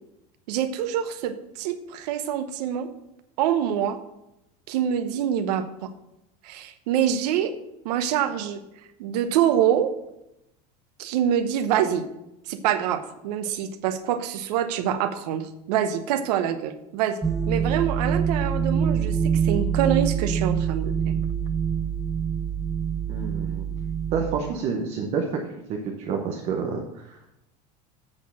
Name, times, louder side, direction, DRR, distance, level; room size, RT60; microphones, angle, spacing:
voice 1, 0.5-2.9 3.4-4.0 4.7-5.9 6.4-7.5 7.8-8.6 9.0-9.9 11.0-12.1 12.5-17.2 17.5-21.2, right 9 dB, 85° right, 9 dB, 0.9 m, -25 dB
sound 1, 17.2-24.4, right 7 dB, 5° right, 0.4 m, -25 dB
voice 2, 23.1-23.7 24.1-25.4 25.8-27.3, right 5 dB, 35° right, 2 dB, 0.8 m, -29 dB
8.1 x 4.4 x 7.1 m, 0.87 s
cardioid pair, 175°, 20 cm